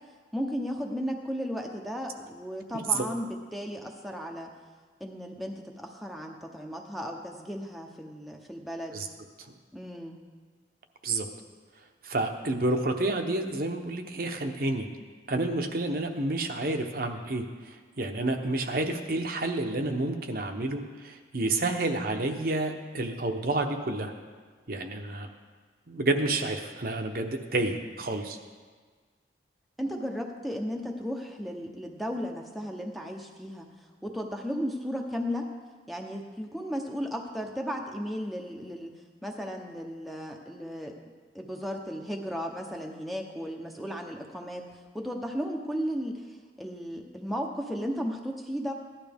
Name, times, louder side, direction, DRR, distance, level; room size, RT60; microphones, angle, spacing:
voice 1, 0.3-4.5 5.0-9.0 9.7-10.2 29.8-33.7 34.0-35.5 35.9-38.9 39.2-40.9 41.3-44.7 44.9-48.7, equal, ahead, 0 dB, 0.8 m, -35 dB
voice 2, 2.7-3.0 8.9-9.1 11.0-11.3 12.0-14.9 15.3-24.1 24.7-25.3 25.9-28.4, right 2 dB, 50° right, 4 dB, 0.9 m, -29 dB
16.0 x 11.5 x 3.5 m, 1.5 s
head